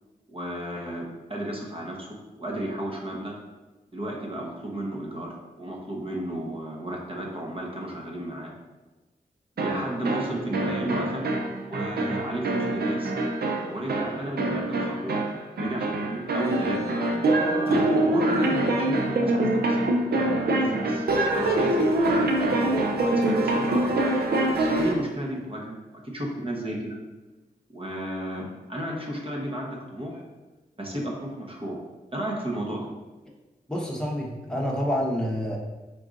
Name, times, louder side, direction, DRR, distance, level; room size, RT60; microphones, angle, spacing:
voice 1, 0.3-3.3 3.9-8.5 9.6-11.3 11.6-13.1 13.7-15.2 15.6-16.9 17.7-24.1 24.8-25.8 26.1-27.0 27.7-30.2 30.8-31.8 32.1-32.9, right 1 dB, 35° right, -1 dB, 1.1 m, -33 dB
sound 1, 9.6-25.0, right 1 dB, 80° right, 0.5 m, -25 dB
voice 2, 33.7-35.6, equal, 5° left, -2 dB, 1.1 m, -28 dB
4.4 x 3.9 x 2.6 m, 1.1 s
cardioid pair, 50°, 16 cm